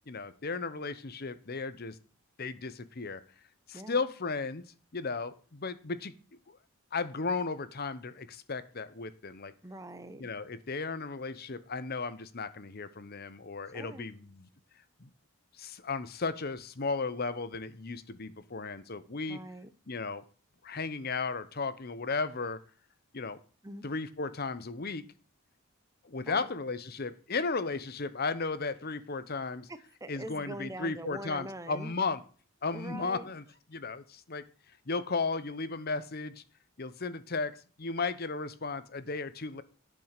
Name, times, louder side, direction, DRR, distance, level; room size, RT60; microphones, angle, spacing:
voice 1, 0.1-2.0 2.4-3.2 3.7-4.6 4.9-6.1 6.9-9.5 10.2-14.5 15.0-15.1 15.6-19.4 19.9-20.2 20.6-22.6 23.1-23.4 23.8-25.0 26.0-29.7 30.1-32.2 32.6-33.4 33.7-34.4 34.9-36.4 36.8-39.6, left 4 dB, 45° left, 13 dB, 0.9 m, -35 dB
voice 2, 9.6-10.2 13.7-14.1 19.3-19.7 23.6-23.8 26.3-26.5 29.7-31.9 32.7-33.3, right 1 dB, 15° right, 11 dB, 0.8 m, -43 dB
10.5 x 5.6 x 6.6 m, 0.40 s
head